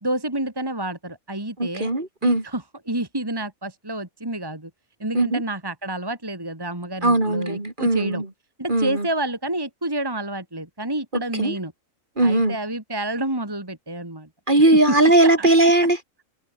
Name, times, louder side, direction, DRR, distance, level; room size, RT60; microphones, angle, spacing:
voice 1, 0.0-1.9 2.2-4.7 5.0-8.2 8.6-11.7 12.2-14.3 14.9-15.1 15.4-15.5 15.8-15.9, right 1 dB, 15° right, 2.6 m, -29 dB
voice 2, 1.6-2.4 5.1-5.4 7.0-8.2 8.7-9.1 11.4-11.5 12.2-12.6 14.5-16.0, right 2 dB, 35° right, 3.8 m, -18 dB
omnidirectional pair, 1.4 m